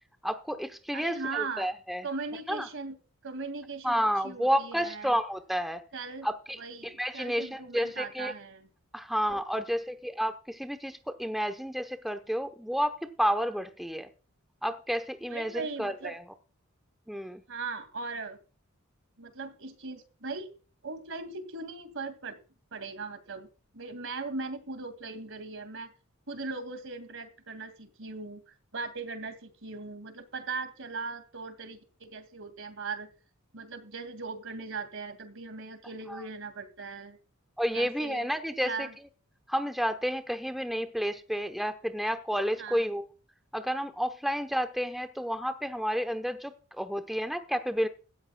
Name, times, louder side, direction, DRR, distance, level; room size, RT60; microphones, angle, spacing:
voice 1, 0.2-2.0 2.5-2.7 3.8-5.8 6.2-6.3 6.8-8.3 8.9-14.1 14.6-16.2 17.1-17.4 37.6-38.9 39.5-43.0 43.5-47.9, equal, ahead, 8 dB, 0.9 m, -30 dB
voice 2, 0.9-1.7 2.0-3.0 3.2-5.2 5.9-6.3 6.5-8.7 15.3-16.2 17.5-18.4 19.2-20.5 20.8-22.4 22.7-23.5 23.7-25.9 26.3-28.4 28.7-33.1 33.5-37.2 37.7-38.3 38.6-38.9 42.6-42.9, right 4 dB, 65° right, 9 dB, 2.3 m, -39 dB
17.0 x 13.5 x 2.3 m, 0.36 s
head